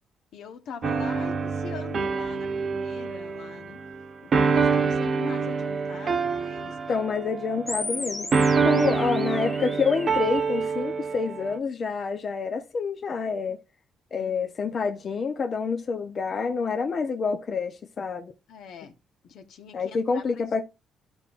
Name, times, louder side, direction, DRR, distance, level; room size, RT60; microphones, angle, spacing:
voice 1, 0.3-3.8 4.2-6.8 8.6-9.0 14.1-14.5 18.5-18.9 19.2-20.6, left 6 dB, 75° left, 1.2 m, -42 dB
sound 1, 0.8-8.0 8.3-11.6, right 5 dB, 45° right, 0.9 m, -26 dB
voice 2, 6.9-13.6 14.1-18.3 19.7-20.6, left 5 dB, 50° left, 0.8 m, -28 dB
sound 2, 7.7-10.7, left 2 dB, 20° left, 1.2 m, -36 dB
12.5 x 5.4 x 2.5 m
cardioid pair, 90°, 0 cm